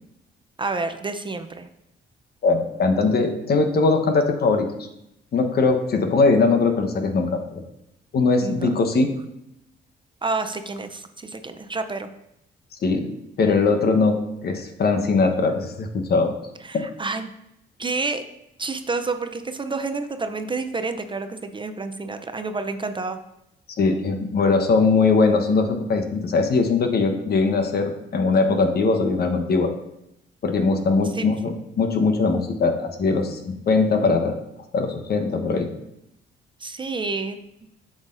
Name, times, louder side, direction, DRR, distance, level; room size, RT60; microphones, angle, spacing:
voice 1, 0.6-1.7 8.4-8.9 10.2-12.1 16.6-17.3 17.8-18.2 18.6-23.2 31.0-31.3 36.6-37.4, right 3 dB, 25° right, 8 dB, 0.5 m, -29 dB
voice 2, 2.4-4.7 5.3-7.6 8.1-9.1 12.8-13.1 13.4-14.2 14.4-16.3 16.7-16.9 23.8-29.7 30.4-34.4 34.7-35.7, left 4 dB, 50° left, 6 dB, 1.0 m, -20 dB
7.8 x 6.3 x 2.5 m, 0.83 s
cardioid pair, 90°, 20 cm